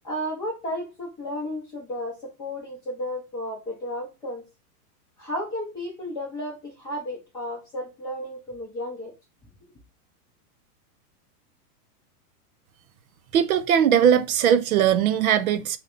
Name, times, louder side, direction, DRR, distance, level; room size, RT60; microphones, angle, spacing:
voice 1, 0.0-4.4 5.2-9.1, left 1 dB, 10° left, 0.6 m, -33 dB
voice 2, 13.3-15.8, right 9 dB, 65° right, 0.5 m, -20 dB
4.0 x 2.3 x 3.7 m
supercardioid pair, 170°, 47 cm